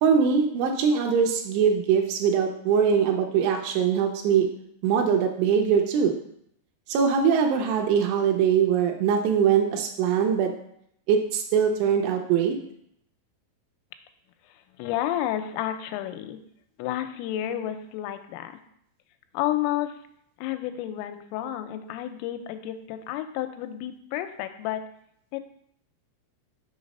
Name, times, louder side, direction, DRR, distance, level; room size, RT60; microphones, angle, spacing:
voice 1, 0.0-4.5 4.8-6.1 6.9-10.5 11.1-12.6, right 7 dB, 80° right, 3 dB, 2.9 m, -22 dB
voice 2, 14.8-16.4 16.8-18.5 19.3-20.0 20.4-24.8 25.3-25.4, left 12 dB, 85° left, 8 dB, 3.2 m, -31 dB
7.0 x 4.0 x 5.3 m, 0.70 s
omnidirectional pair, 5.7 m